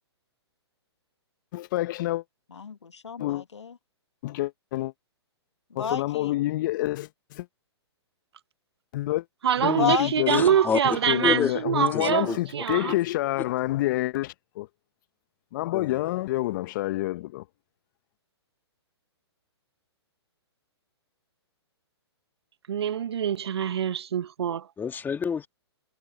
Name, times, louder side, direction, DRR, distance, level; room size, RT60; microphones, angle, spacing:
voice 1, 1.5-2.2 3.2-3.4 4.2-4.9 5.7-7.5 8.9-9.2 9.6-10.4 10.8-14.7 15.5-17.4, left 16 dB, 45° left, 1.4 m, -28 dB
voice 2, 2.5-3.8 5.7-6.3 9.8-10.6, left 5 dB, 80° left, 1.7 m, -31 dB
voice 3, 9.4-12.9 22.7-24.7, right 9 dB, 65° right, 1.3 m, -25 dB
voice 4, 10.3-10.8 11.2-11.5 11.9-12.4 15.7-16.0 24.8-25.5, left 6 dB, 15° left, 2.2 m, -28 dB
hypercardioid pair, 125°, 14 cm